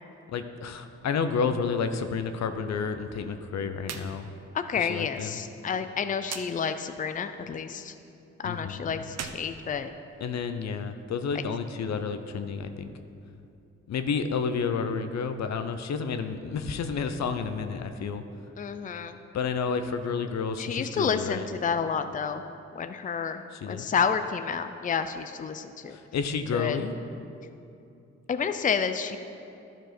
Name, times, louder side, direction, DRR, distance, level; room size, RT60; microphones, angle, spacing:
voice 1, 0.3-4.3 4.8-5.4 8.4-8.9 10.2-12.9 13.9-18.2 19.3-21.4 23.5-23.9 25.9-26.9, left 5 dB, 65° left, 9 dB, 0.7 m, -30 dB
sound 1, 3.8-4.1 4.4-4.5 6.2-6.5 9.0-10.4, right 7 dB, 60° right, 0.7 m, -39 dB
voice 2, 4.5-7.9 8.4-9.9 18.6-19.2 20.6-22.4 22.7-26.0 26.5-26.8 28.3-29.2, left 6 dB, 30° left, 9 dB, 0.5 m, -30 dB
11.5 x 4.5 x 6.0 m, 2.6 s
cardioid pair, 60°, 29 cm